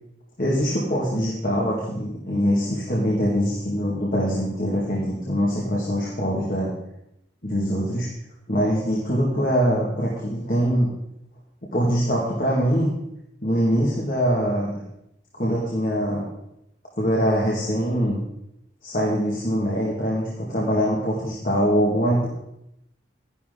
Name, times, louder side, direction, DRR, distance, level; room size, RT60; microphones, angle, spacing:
voice 1, 0.4-6.7 7.4-8.1 8.5-10.9 11.7-12.9 13.4-14.8 15.3-16.2 17.0-18.2 18.8-22.3, equal, 50° left, -4 dB, 2.2 m, -23 dB
12.0 x 11.0 x 3.9 m, 0.82 s
head